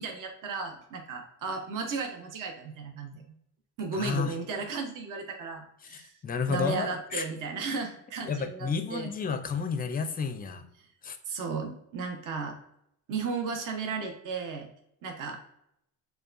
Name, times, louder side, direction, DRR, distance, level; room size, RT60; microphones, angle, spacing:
voice 1, 0.0-3.2 3.8-6.1 6.5-9.1 11.3-12.6 13.1-14.7 15.0-15.4, right 4 dB, 45° right, 3 dB, 0.9 m, -35 dB
voice 2, 3.9-4.3 5.8-7.2 8.3-10.6 11.0-11.2, left 5 dB, 20° left, 9 dB, 0.5 m, -31 dB
6.7 x 2.3 x 2.5 m, 0.76 s
supercardioid pair, 80°, 44 cm